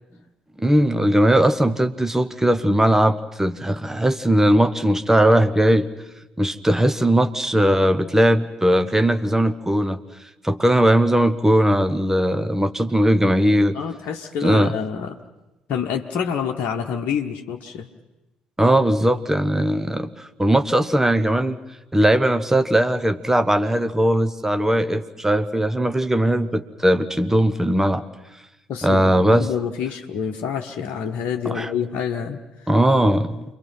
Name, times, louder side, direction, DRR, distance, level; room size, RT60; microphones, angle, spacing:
voice 1, 0.6-5.9 6.4-10.0 10.4-13.8 14.4-14.8 18.6-21.6 21.9-28.0 28.8-29.5 31.4-31.7 32.7-33.4, right 1 dB, 10° right, 9 dB, 1.4 m, -19 dB
voice 2, 13.7-15.2 15.7-17.9 28.7-32.7, left 7 dB, 55° left, 2 dB, 1.3 m, -27 dB
28.5 x 22.0 x 5.8 m, 1.0 s
figure-of-eight pair, 45°, 4 cm